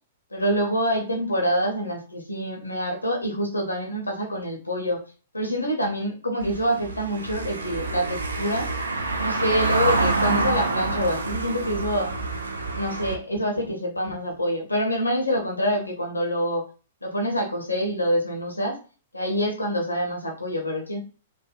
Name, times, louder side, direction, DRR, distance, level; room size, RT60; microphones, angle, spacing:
voice 1, 0.3-5.0 5.3-8.7 9.2-12.1 12.7-16.6 17.0-18.8 19.1-21.0, equal, 85° left, 1 dB, 0.6 m, -26 dB
Car passing by / Engine, 6.4-13.2, right 3 dB, 75° right, 0.4 m, -27 dB
3.2 x 2.1 x 2.3 m, 0.37 s
figure-of-eight pair, 105°, 0 cm